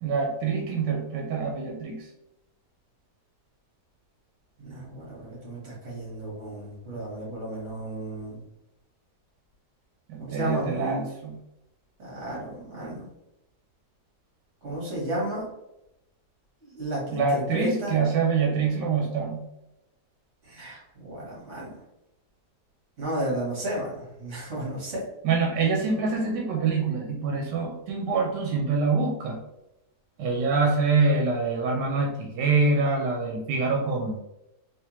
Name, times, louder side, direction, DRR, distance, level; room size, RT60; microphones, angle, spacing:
voice 1, 0.0-2.1 10.1-11.4 17.1-19.4 25.2-29.4 30.2-34.2, right 4 dB, 85° right, 0 dB, 1.3 m, -25 dB
voice 2, 4.6-8.4 10.3-11.0 12.0-13.1 14.6-15.5 16.6-18.0 20.4-21.7 23.0-25.0, right 1 dB, 45° right, -5 dB, 1.8 m, -33 dB
3.5 x 3.1 x 2.9 m, 0.90 s
omnidirectional pair, 1.8 m